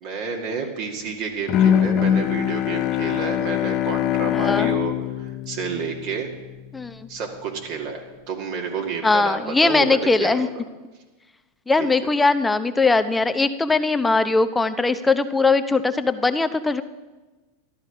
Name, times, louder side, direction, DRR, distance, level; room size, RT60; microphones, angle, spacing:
voice 1, 0.0-6.3 7.1-8.0 8.3-10.6 11.8-11.9, right 5 dB, 55° right, 0 dB, 2.0 m, -30 dB
Bowed string instrument, 1.5-6.6, left 10 dB, 45° left, 0.5 m, -23 dB
voice 2, 4.3-4.7 6.7-6.9 9.0-10.5 11.7-16.8, left 3 dB, 10° left, 11 dB, 0.7 m, -20 dB
12.5 x 12.5 x 5.0 m, 1.2 s
hypercardioid pair, 95°, 0 cm